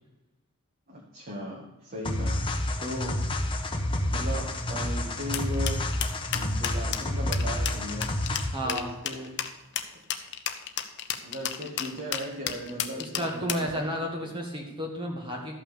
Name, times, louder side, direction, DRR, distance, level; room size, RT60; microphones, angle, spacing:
voice 1, 0.9-2.4 2.8-3.2 4.1-5.9 6.3-8.2 8.6-9.4 11.2-13.8 14.1-14.3, equal, 40° right, -3 dB, 1.8 m, -37 dB
sound 1, 2.0-8.7, left 1 dB, 25° left, 1.1 m, -29 dB
sound 2, 5.3-13.7, left 10 dB, 55° left, 0.9 m, -32 dB
voice 2, 8.5-8.9 12.9-15.6, equal, 20° right, 0 dB, 1.5 m, -32 dB
13.0 x 5.8 x 6.8 m, 1.0 s
head